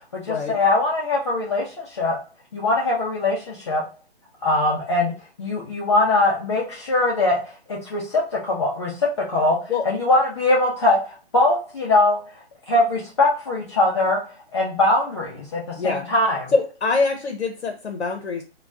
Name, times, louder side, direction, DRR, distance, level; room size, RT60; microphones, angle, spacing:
voice 1, 0.1-2.2 2.5-3.8 4.4-5.1 5.4-7.4 7.7-8.9 9.3-9.6 9.8-11.0 11.3-12.2 12.7-14.2 14.5-16.5, left 2 dB, 25° left, -4 dB, 0.4 m, -21 dB
voice 2, 15.7-16.1 16.5-18.4, left 4 dB, 80° left, 4 dB, 0.7 m, -24 dB
2.2 x 2.2 x 3.5 m, 0.37 s
figure-of-eight pair, 140°, 32 cm